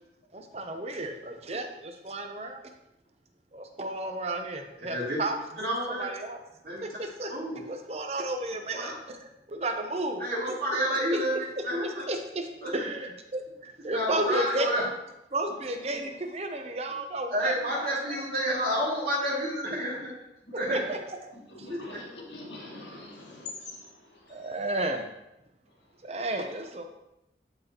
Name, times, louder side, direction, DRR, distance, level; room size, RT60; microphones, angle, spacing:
voice 1, 0.3-2.6 3.5-5.3 5.6-5.7 6.0-6.4 6.8-7.3 7.7-10.5 11.1-11.2 11.8-12.5 12.7-14.7 15.3-18.2 20.7-21.2 21.6-21.7 24.3-25.1 26.0-26.8, right 2 dB, 35° right, 5 dB, 0.7 m, -33 dB
voice 2, 5.6-6.1 6.6-7.0 7.3-7.6 8.7-8.9 10.2-11.4 11.6-12.0 12.6-12.7 13.9-14.9 17.3-20.1 20.5-20.8 21.7-21.8, equal, 60° right, -5 dB, 2.4 m, -29 dB
voice 3, 21.3-24.5, left 2 dB, 85° left, -2 dB, 1.8 m, -44 dB
11.0 x 4.0 x 2.9 m, 0.89 s
head